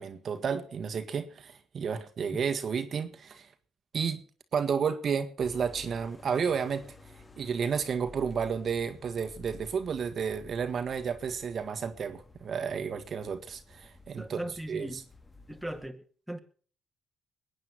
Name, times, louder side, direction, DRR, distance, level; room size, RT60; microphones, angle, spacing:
voice 1, 0.0-3.5 3.9-4.2 4.5-6.9 7.4-14.4 14.7-15.0, right 6 dB, 55° right, 1.5 m, -32 dB
sound 1, 5.4-15.9, left 3 dB, 25° left, 1.9 m, -53 dB
voice 2, 14.2-15.0 15.5-16.4, right 1 dB, 5° right, 2.1 m, -38 dB
21.0 x 9.1 x 6.2 m
cardioid pair, 90°, 0 cm